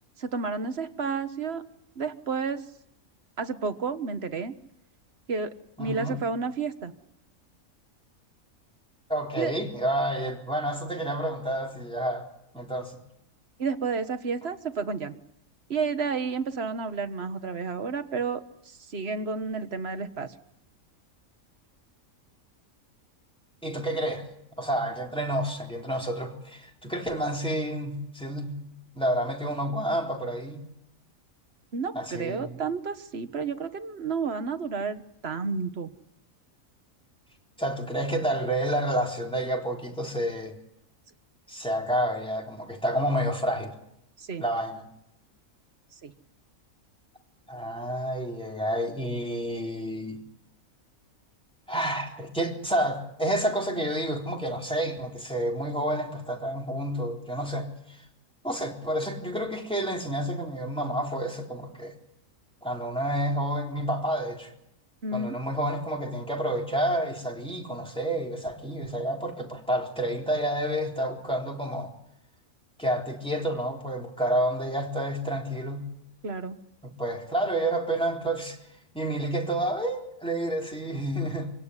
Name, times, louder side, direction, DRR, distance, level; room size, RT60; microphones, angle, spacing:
voice 1, 0.2-1.6 2.0-2.6 3.4-4.5 5.3-6.9 9.4-9.5 13.6-15.1 15.7-20.3 31.7-35.9 44.2-44.4 46.0-46.1 65.0-65.3 76.2-76.6, right 5 dB, 45° right, 1.6 m, -31 dB
voice 2, 5.8-6.2 9.1-12.3 12.5-13.0 23.6-24.3 24.6-28.5 29.0-30.7 31.9-32.5 37.6-40.6 41.5-43.7 44.4-44.9 47.5-50.2 51.7-58.0 58.4-62.0 62.6-64.5 65.1-71.9 72.8-75.8 76.8-78.6 78.9-81.5, right 1 dB, 5° left, 4.0 m, -29 dB
26.0 x 17.0 x 9.9 m
omnidirectional pair, 1.5 m